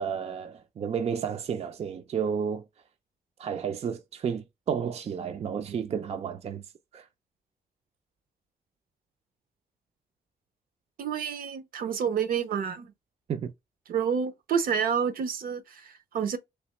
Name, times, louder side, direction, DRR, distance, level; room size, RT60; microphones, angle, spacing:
voice 1, 0.0-2.6 3.4-6.7 6.9-7.1 13.3-13.5, right 7 dB, 45° right, 0.5 m, -31 dB
voice 2, 11.0-12.9 13.9-16.4, right 7 dB, 70° right, 0.7 m, -29 dB
3.3 x 3.0 x 2.9 m
cardioid pair, 110°, 15 cm